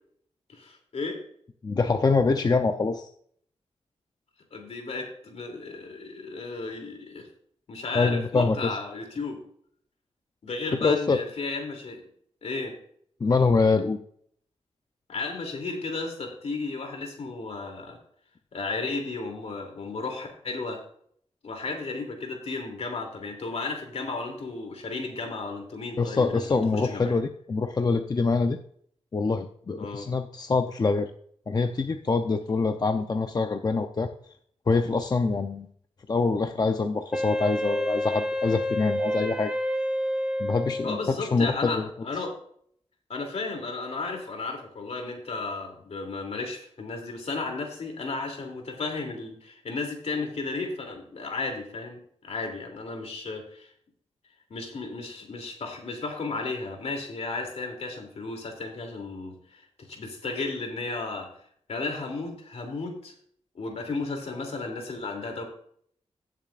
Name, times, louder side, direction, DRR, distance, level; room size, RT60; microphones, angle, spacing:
voice 1, 0.5-1.2 4.5-7.3 7.7-9.4 10.4-12.0 12.4-12.7 15.1-18.0 18.5-20.8 21.4-27.2 29.8-30.1 40.8-42.3 43.1-53.7 54.5-61.3 61.7-63.1 63.5-65.4, left 3 dB, 65° left, 3 dB, 2.9 m, -34 dB
voice 2, 1.6-3.1 7.9-8.8 10.8-11.2 13.2-14.0 26.0-28.6 29.1-31.1 31.5-34.1 34.7-35.7 36.1-39.5 40.4-41.8, left 4 dB, 35° left, 6 dB, 0.6 m, -25 dB
Wind instrument woodwind instrument, 37.1-41.4, left 1 dB, 10° right, 1.0 m, -29 dB
17.5 x 7.4 x 2.5 m, 0.63 s
wide cardioid pair, 120°, 12 cm